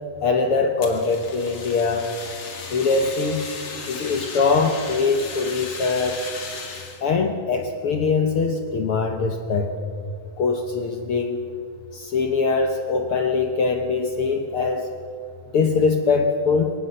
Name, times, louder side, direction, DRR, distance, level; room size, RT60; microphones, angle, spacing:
voice 1, 0.2-2.1 2.7-3.4 3.9-6.2 7.0-9.7 10.4-11.4 11.9-14.9 15.5-16.7, left 4 dB, 70° left, 5 dB, 1.3 m, -22 dB
Fire, 0.8-7.0, left 4 dB, 40° left, 2.3 m, -36 dB
22.0 x 18.0 x 6.7 m, 2.3 s
omnidirectional pair, 4.1 m